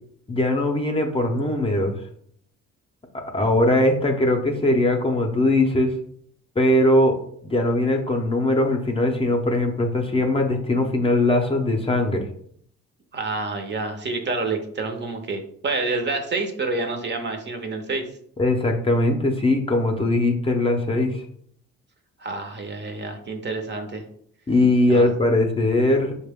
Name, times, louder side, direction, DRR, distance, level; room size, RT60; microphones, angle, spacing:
voice 1, 0.3-1.9 3.3-5.9 6.6-7.2 7.4-12.2 18.4-21.2 24.5-26.2, left 1 dB, 20° left, 3 dB, 0.5 m, -20 dB
voice 2, 13.1-18.1 22.2-24.0 24.9-25.1, right 3 dB, 35° right, 5 dB, 0.6 m, -28 dB
4.3 x 2.2 x 3.4 m, 0.64 s
cardioid pair, 90°, 30 cm